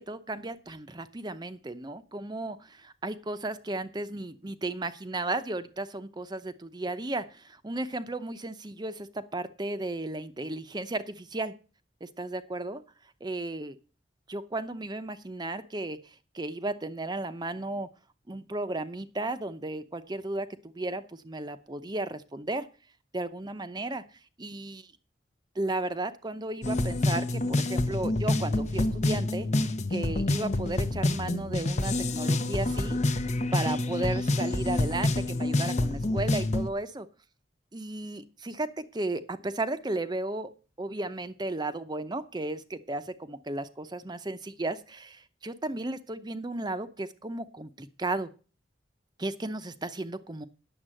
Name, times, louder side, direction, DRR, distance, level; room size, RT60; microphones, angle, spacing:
voice 1, 0.1-11.5 12.0-12.8 13.2-13.8 14.3-17.9 18.3-20.5 20.7-22.7 23.1-24.0 24.4-24.9 25.5-29.5 29.9-33.0 33.5-37.1 37.7-40.5 40.8-48.3 49.2-50.5, right 2 dB, 25° right, 11 dB, 0.7 m, -34 dB
sound 1, 26.6-36.7, left 2 dB, 40° left, 0.8 m, -27 dB
9.8 x 7.3 x 7.6 m, 0.36 s
head